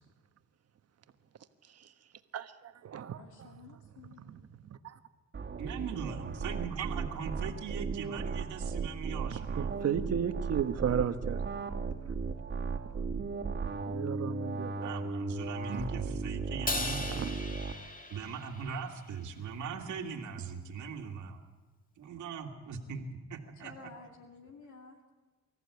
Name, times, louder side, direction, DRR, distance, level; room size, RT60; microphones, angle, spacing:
voice 1, 2.3-3.2 4.3-4.4 4.6-4.9 6.8-6.9 9.3-11.4 13.9-14.9 15.7-15.8 17.1-17.3, right 8 dB, 55° right, 9 dB, 1.3 m, -34 dB
voice 2, 3.2-4.3 23.6-25.1, left 4 dB, 75° left, 2 dB, 2.4 m, -52 dB
sound 1, 5.3-17.7, right 4 dB, 35° right, 2.1 m, -36 dB
voice 3, 5.6-9.7 14.8-17.0 18.1-21.4 22.0-23.9, right 6 dB, 75° right, 1 dB, 2.3 m, -40 dB
Crash cymbal, 16.7-19.0, left 2 dB, 30° left, 2.0 m, -37 dB
24.5 x 14.0 x 8.4 m, 1.3 s
cardioid pair, 90°, 30 cm